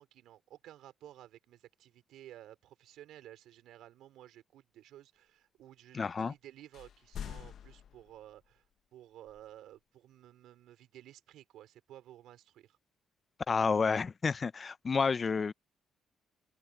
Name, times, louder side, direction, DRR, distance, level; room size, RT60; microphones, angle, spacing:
voice 1, 0.0-8.6 8.9-12.8, right 13 dB, 85° right, 4.5 m, -54 dB
voice 2, 5.9-6.3 13.5-15.5, left 5 dB, 35° left, 0.5 m, -30 dB
sound 1, 6.7-8.4 9.3-9.4, left 9 dB, 65° left, 0.9 m, -45 dB
open air
cardioid pair, 90°, 0 cm